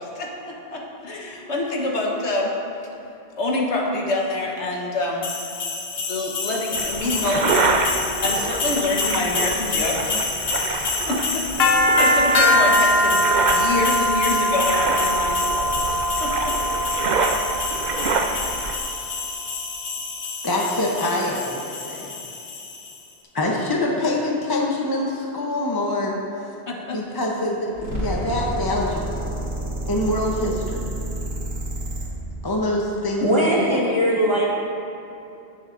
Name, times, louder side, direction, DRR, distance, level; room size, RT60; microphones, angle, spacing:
voice 1, 0.0-2.6 3.4-5.3 6.1-7.9 8.2-10.3 10.7-13.2 13.5-16.5 26.7-27.0, left 2 dB, 85° left, -1 dB, 1.5 m, -26 dB
sound 1, 5.2-22.9, left 1 dB, 65° left, 1.1 m, -24 dB
sound 2, 6.8-18.8, right 4 dB, 50° right, 0.6 m, -27 dB
voice 2, 20.4-22.2 23.3-26.5 26.9-29.2 29.9-30.8 32.4-33.8, left 1 dB, 25° left, -1 dB, 0.7 m, -25 dB
sound 3, 27.7-32.1, right 1 dB, 90° right, 2.5 m, -29 dB
voice 3, 33.2-34.5, equal, 25° right, -5 dB, 1.4 m, -19 dB
16.0 x 7.0 x 2.6 m, 2.8 s
omnidirectional pair, 1.1 m